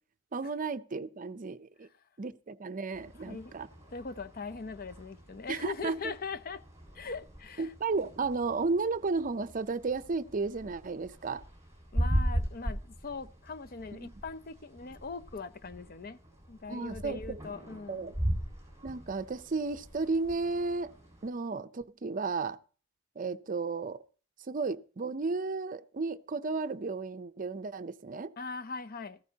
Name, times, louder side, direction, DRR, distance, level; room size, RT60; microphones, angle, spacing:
voice 1, 0.3-1.9 2.2-3.7 5.5-6.1 7.6-11.4 13.9-14.1 16.7-17.4 17.9-18.1 18.8-20.9 21.2-22.6 23.2-24.0 24.5-28.3, right 4 dB, 45° right, 0.6 m, -33 dB
sound 1, 2.9-21.3, equal, 15° right, 7.3 m, -39 dB
voice 2, 3.2-3.6 3.9-6.6 6.9-7.7 11.9-16.2 16.5-18.1 28.4-29.2, left 4 dB, 50° left, 0.6 m, -41 dB
15.0 x 13.5 x 2.8 m
head